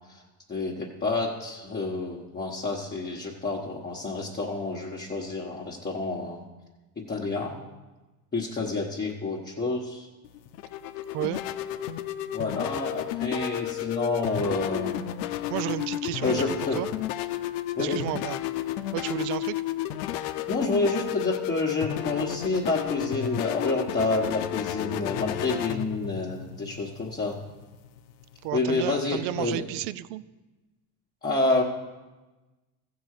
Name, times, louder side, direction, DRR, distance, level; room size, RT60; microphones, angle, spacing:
voice 1, 0.5-6.4 7.0-7.6 8.3-10.1 12.3-15.0 16.2-16.9 17.8-18.0 20.5-27.4 28.5-29.6 31.2-31.6, left 3 dB, 20° left, -3 dB, 1.2 m, -28 dB
sound 1, 10.2-28.5, left 13 dB, 90° left, 0.7 m, -32 dB
voice 2, 15.5-16.9 17.8-18.4 18.9-19.6 28.4-30.2, right 15 dB, 80° right, 16 dB, 0.6 m, -32 dB
14.5 x 4.8 x 6.5 m, 1.2 s
supercardioid pair, 95°, 49 cm